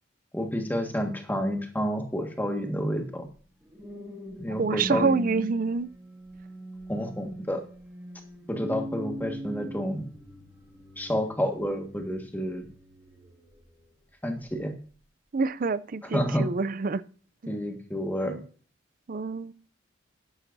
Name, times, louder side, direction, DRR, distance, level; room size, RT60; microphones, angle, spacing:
voice 1, 0.3-3.3 4.4-5.5 6.9-7.6 8.5-10.0 11.0-12.7 14.2-14.7 16.0-16.5 17.5-18.4, equal, 10° left, 1.6 m, -29 dB
sound 1, 3.4-13.9 14.4-14.7, equal, 10° right, 1.8 m, -41 dB
voice 2, 4.6-5.9 15.3-17.0 17.4-17.5 18.2-18.4 19.1-19.5, right 4 dB, 45° right, 0.4 m, -27 dB
12.5 x 10.5 x 2.6 m
head